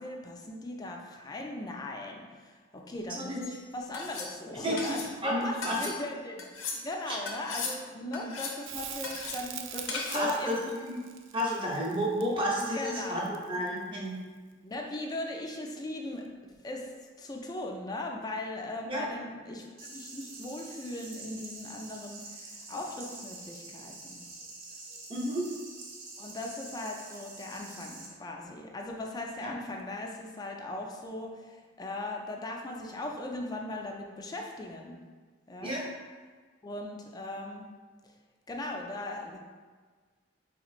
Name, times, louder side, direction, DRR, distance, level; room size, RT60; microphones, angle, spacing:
voice 1, 0.0-6.4 6.7-10.6 12.6-13.3 14.6-16.3 16.6-16.9 17.2-24.2 26.2-35.0 35.5-35.7 36.6-37.7 38.5-39.4, left 2 dB, 20° left, 1 dB, 0.3 m, -38 dB
sound 1, 3.4-3.6 3.9-4.3 4.8-5.1 5.6-6.0 6.4-6.8 7.3-7.8 8.1-8.6 9.0-9.4 9.9-10.3, left 4 dB, 70° left, 0.6 m, -37 dB
voice 2, 5.2-5.8 7.1-7.2 8.0-8.4 10.1-11.0 11.3-14.2 18.9-19.0 25.1-25.4 29.4-29.5 35.6-35.8, equal, 25° right, -4 dB, 0.7 m, -31 dB
Crackle, 8.7-13.8 16.5-16.6, right 9 dB, 65° right, 0.3 m, -43 dB
sound 2, 19.8-28.1, right 3 dB, 85° right, 0.8 m, -46 dB
4.1 x 3.0 x 2.4 m, 1.5 s
head